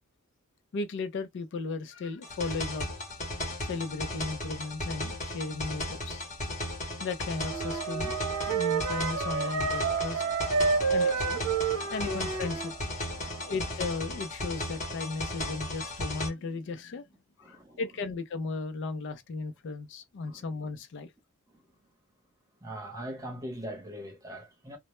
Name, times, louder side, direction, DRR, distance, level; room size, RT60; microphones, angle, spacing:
voice 1, 0.7-2.9 3.6-6.2 7.0-8.2 8.5-10.5 10.9-11.4 11.9-17.1 17.5-21.1, left 3 dB, 55° left, 0.4 m, -36 dB
sound 1, 2.2-16.3, left 1 dB, 35° left, 0.8 m, -36 dB
sound 2, 7.4-13.7, right 8 dB, 60° right, 0.3 m, -39 dB
Wind instrument woodwind instrument, 7.5-12.7, right 4 dB, 80° right, 0.8 m, -30 dB
voice 2, 8.4-9.2 10.2-11.1 11.7-12.2 13.1-13.6 17.4-17.8 20.2-20.4 21.5-21.6 22.6-24.8, right 1 dB, 15° right, 0.8 m, -43 dB
2.0 x 2.0 x 2.9 m
head